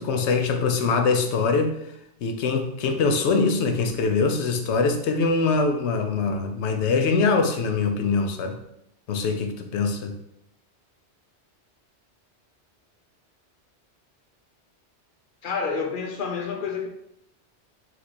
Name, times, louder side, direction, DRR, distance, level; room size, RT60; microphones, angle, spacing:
voice 1, 0.0-1.7 2.2-8.6 9.1-10.1, left 4 dB, 80° left, 6 dB, 0.9 m, -23 dB
voice 2, 15.4-16.9, left 5 dB, 60° left, 4 dB, 0.6 m, -28 dB
4.4 x 2.5 x 4.2 m, 0.78 s
omnidirectional pair, 1.1 m